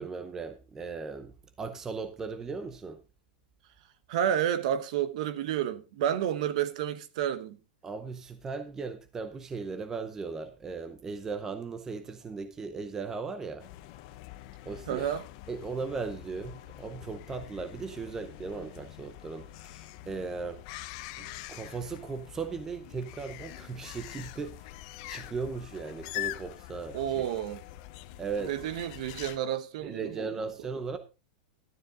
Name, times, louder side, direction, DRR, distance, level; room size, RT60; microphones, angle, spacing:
voice 1, 0.0-3.0 7.8-13.7 14.7-15.1 15.5-20.6 21.2-24.7 25.1-27.3 28.2-28.5 29.8-31.0, right 4 dB, 10° right, 0.6 m, -37 dB
voice 2, 4.1-7.6 14.9-15.2 26.9-27.6 28.4-30.3 30.6-30.7, right 10 dB, 45° right, 1.0 m, -30 dB
sound 1, 13.6-29.4, left 16 dB, 35° left, 0.7 m, -44 dB
12.5 x 10.0 x 3.7 m
supercardioid pair, 175°, 5 cm